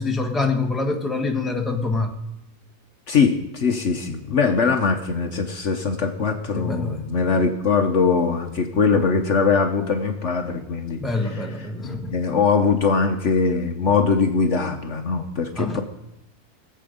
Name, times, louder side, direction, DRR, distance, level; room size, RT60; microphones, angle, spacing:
voice 1, 0.0-2.1 6.5-7.0 11.0-12.2 15.5-15.8, left 3 dB, ahead, 3 dB, 1.1 m, -25 dB
voice 2, 3.1-11.0 11.3-11.5 11.8-15.8, left 5 dB, 55° left, 6 dB, 1.2 m, -21 dB
22.5 x 7.8 x 5.1 m, 0.87 s
omnidirectional pair, 1.6 m